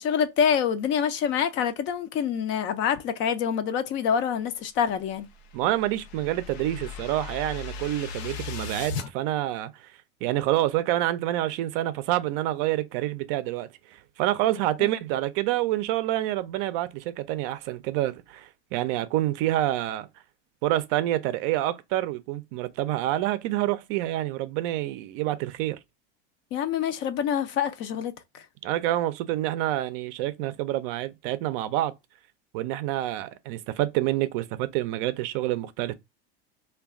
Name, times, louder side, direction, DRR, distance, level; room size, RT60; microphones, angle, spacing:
voice 1, 0.0-5.3 14.8-14.9 26.5-28.5, left 8 dB, 40° left, 0.4 m, -26 dB
sound 1, 5.0-9.1, left 5 dB, 90° left, 0.6 m, -37 dB
voice 2, 5.5-9.9 10.2-20.1 20.6-25.8 28.6-31.9 32.5-35.9, right 14 dB, 60° right, 0.4 m, -27 dB
2.3 x 2.2 x 3.4 m
supercardioid pair, 125°, 31 cm